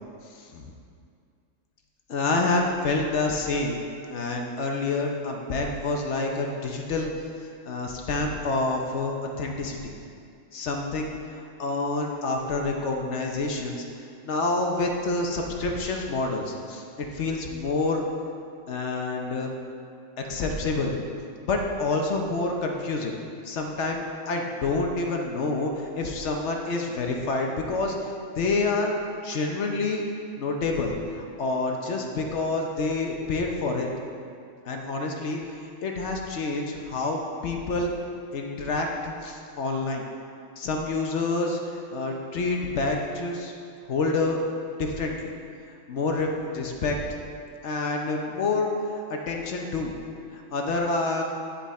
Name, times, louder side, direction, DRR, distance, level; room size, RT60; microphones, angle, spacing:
voice 1, 0.3-0.7 2.1-3.8 4.1-7.1 7.4-9.9 10.5-13.8 14.2-18.0 18.7-19.5 20.3-21.0 21.4-23.1 23.4-30.0 30.3-33.9 34.6-37.9 38.3-40.0 40.6-43.5 43.9-44.4 44.8-45.3 45.9-47.0 47.6-49.9 50.3-51.2, left 3 dB, 65° left, 1 dB, 1.0 m, -28 dB
10.0 x 5.8 x 4.2 m, 2.3 s
omnidirectional pair, 1.3 m